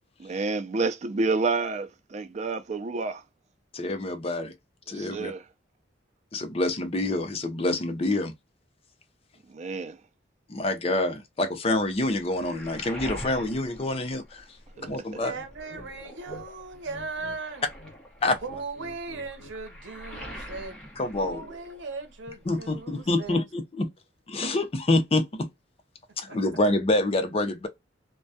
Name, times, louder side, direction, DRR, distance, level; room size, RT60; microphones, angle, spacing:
voice 1, 0.2-3.2 4.9-5.4 9.5-10.0 14.8-14.9, right 3 dB, 40° right, 0.4 m, -29 dB
voice 2, 3.7-4.5 4.9-5.3 6.3-8.3 10.5-14.6 14.9-15.3 18.2-18.4 21.0-21.4 22.5-23.9 24.3-25.5 26.2-27.7, left 2 dB, 30° left, 0.5 m, -27 dB
Waves surf, 11.7-14.9 15.2-22.2 22.4-23.4, equal, 5° left, 0.9 m, -44 dB
sound 1, 14.7-15.0 15.3-16.5 16.7-17.4 17.7-19.6, left 1 dB, 55° left, 0.9 m, -48 dB
voice 3, 15.2-17.6 18.4-20.8 21.2-23.4 26.3-26.4, right 4 dB, 85° right, 0.7 m, -38 dB
2.2 x 2.1 x 2.6 m
head